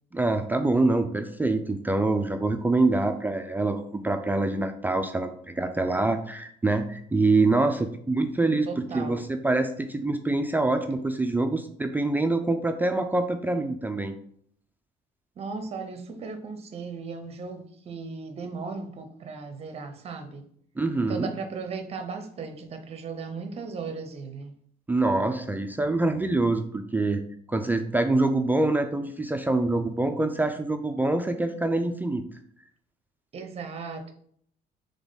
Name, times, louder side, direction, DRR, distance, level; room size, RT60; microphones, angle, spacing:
voice 1, 0.1-14.1 20.8-21.3 24.9-27.2 27.5-32.2, right 2 dB, 10° right, 0.3 m, -25 dB
voice 2, 8.7-9.2 15.4-20.4 21.0-24.5 33.3-34.1, right 4 dB, 35° right, 0.7 m, -36 dB
3.6 x 3.4 x 3.9 m
cardioid pair, 110°, 17 cm